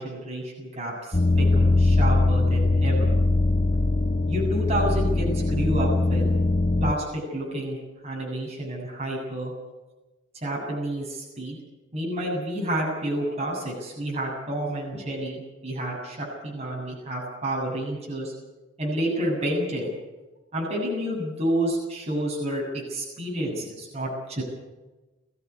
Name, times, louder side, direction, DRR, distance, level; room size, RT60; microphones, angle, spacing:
voice 1, 0.0-3.1 4.3-6.3 6.8-7.8 8.0-9.5 10.4-11.6 11.9-18.3 18.8-19.9 20.5-22.6 22.9-24.4, right 1 dB, 35° right, -2 dB, 7.4 m, -29 dB
sound 1, 1.1-6.9, left 2 dB, 35° left, 0.9 m, -21 dB
22.5 x 15.5 x 8.4 m, 1.2 s
head